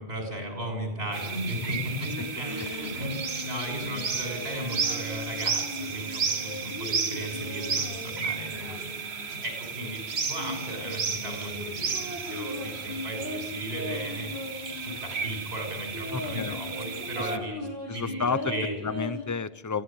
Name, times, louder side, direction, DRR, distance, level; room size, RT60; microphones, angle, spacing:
voice 1, 0.0-14.3 14.8-17.6 17.9-18.7, equal, 70° right, 4 dB, 6.9 m, -36 dB
sound 1, 1.1-17.4, right 5 dB, 85° right, 1.6 m, -33 dB
sound 2, 2.1-9.9 10.4-15.3 15.6-15.7 15.9-19.2, left 2 dB, 55° left, 5.5 m, -39 dB
voice 2, 16.1-16.6 17.2-17.4 17.9-18.5 18.8-19.8, left 5 dB, 20° left, 15 dB, 0.7 m, -31 dB
24.0 x 16.0 x 8.8 m, 0.97 s
omnidirectional pair, 1.1 m